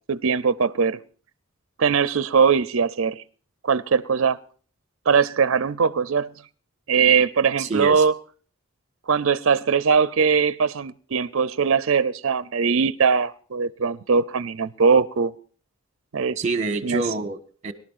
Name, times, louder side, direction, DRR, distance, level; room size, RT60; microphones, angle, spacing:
voice 1, 0.1-1.0 1.8-3.2 3.6-4.4 5.1-6.3 6.9-8.2 9.1-15.3 16.1-16.4 16.8-17.0, right 5 dB, 65° right, 0.5 m, -21 dB
voice 2, 7.6-8.0 16.4-17.7, right 3 dB, 35° right, 1.3 m, -27 dB
25.0 x 12.0 x 2.5 m
head